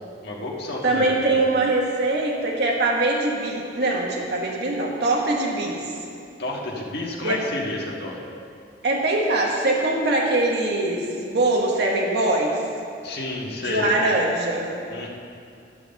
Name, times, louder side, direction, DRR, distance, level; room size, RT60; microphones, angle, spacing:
voice 1, 0.2-1.5 6.4-8.2 13.0-13.9 14.9-15.1, left 2 dB, 60° left, -2 dB, 1.6 m, -31 dB
voice 2, 0.8-6.0 7.2-7.4 8.8-12.6 13.6-14.7, right 2 dB, 65° right, -2 dB, 1.2 m, -22 dB
11.0 x 6.3 x 6.8 m, 2.5 s
head